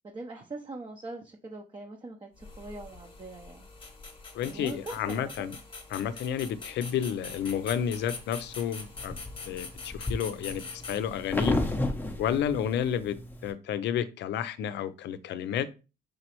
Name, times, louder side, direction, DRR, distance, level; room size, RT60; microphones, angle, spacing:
voice 1, 0.0-3.7 4.4-5.3, right 2 dB, 25° right, 0.7 m, -42 dB
sound 1, 2.4-11.5, left 4 dB, 30° left, 1.0 m, -44 dB
voice 2, 4.3-5.6 5.9-9.2 9.5-11.6 12.2-13.2 13.4-15.7, left 9 dB, 75° left, 0.5 m, -31 dB
sound 2, 7.5-8.2 8.7-13.5, left 2 dB, 10° left, 0.6 m, -33 dB
5.0 x 3.0 x 3.0 m
cardioid pair, 90°, 18 cm